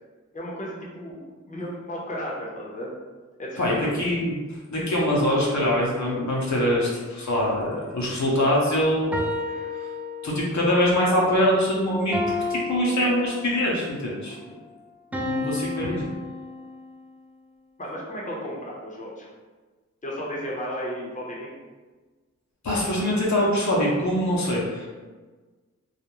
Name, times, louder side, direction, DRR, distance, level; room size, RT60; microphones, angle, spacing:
voice 1, 0.3-2.9 3.4-3.9 14.2-14.6 17.8-19.3 20.0-21.5, equal, 25° left, -4 dB, 0.6 m, -34 dB
voice 2, 3.6-4.3 4.7-9.1 9.5-9.6 10.2-12.2 12.5-14.4 15.1-16.0 22.6-24.9, equal, 65° left, -4 dB, 0.7 m, -23 dB
sound 1, 9.1-10.7 12.1-13.8 15.1-17.0, left 2 dB, 5° right, 0.3 m, -31 dB
2.3 x 2.0 x 2.9 m, 1.3 s
wide cardioid pair, 50°, 30 cm